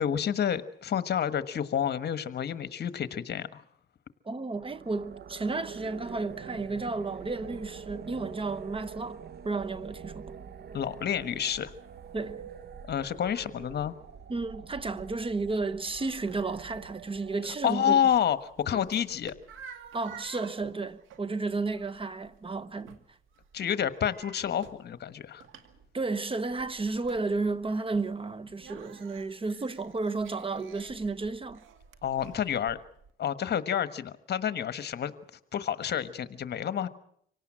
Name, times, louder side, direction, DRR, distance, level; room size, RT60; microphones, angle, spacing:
voice 1, 0.0-3.6 10.7-11.7 12.9-14.0 17.6-19.3 23.5-25.4 32.0-32.8 33.2-35.1 35.5-36.9, left 9 dB, 55° left, 1.3 m, -29 dB
voice 2, 4.2-10.4 12.1-12.4 14.3-18.0 18.7-18.9 19.9-23.0 25.9-31.6, right 3 dB, 25° right, 1.0 m, -32 dB
sound 1, 4.5-18.6, right 7 dB, 55° right, 1.1 m, -45 dB
sound 2, 18.2-33.1, right 7 dB, 85° right, 2.1 m, -52 dB
25.5 x 18.0 x 7.6 m
cardioid pair, 90°, 20 cm